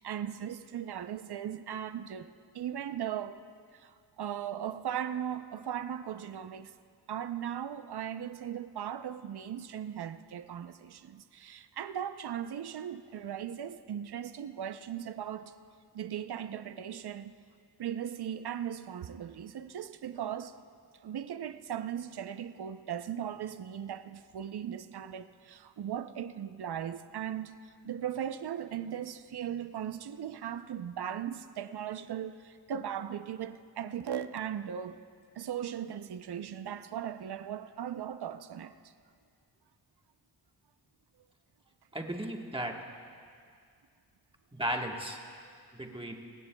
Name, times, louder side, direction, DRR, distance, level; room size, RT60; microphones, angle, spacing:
voice 1, 0.0-2.3 2.5-3.4 3.8-6.7 7.1-15.5 15.9-17.3 17.8-20.5 21.0-27.6 27.8-35.0 35.4-38.7, right 9 dB, 70° right, 0.6 m, -38 dB
voice 2, 41.9-42.8 44.5-45.2 45.7-46.2, right 1 dB, 15° right, 1.3 m, -35 dB
25.5 x 19.0 x 2.3 m
wide cardioid pair, 110°, 40 cm